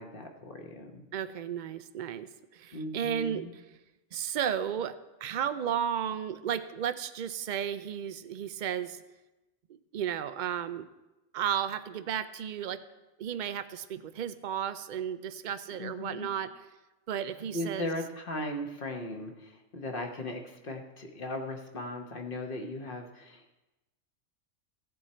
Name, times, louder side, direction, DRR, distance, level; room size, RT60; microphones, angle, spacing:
voice 1, 0.0-1.0 2.7-3.5 15.8-16.3 17.5-23.5, left 1 dB, 45° left, 3 dB, 1.3 m, -38 dB
voice 2, 1.1-3.6 4.1-9.0 9.7-10.9 11.3-12.8 13.2-16.5 17.1-17.9, right 9 dB, 70° right, 12 dB, 0.4 m, -34 dB
15.0 x 7.8 x 4.3 m, 1.0 s
omnidirectional pair, 1.4 m